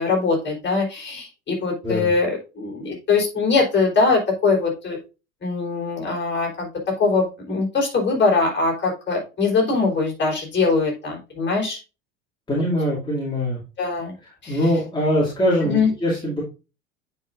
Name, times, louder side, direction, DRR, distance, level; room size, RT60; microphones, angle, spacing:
voice 1, 0.0-5.0 5.4-11.8 13.8-14.1 14.4-14.7 15.6-15.9, left 4 dB, 25° left, -1 dB, 3.9 m, -22 dB
voice 2, 12.5-13.6 14.5-16.4, equal, 10° left, -7 dB, 2.6 m, -22 dB
9.2 x 5.1 x 2.5 m, 0.30 s
figure-of-eight pair, 75°, 40 cm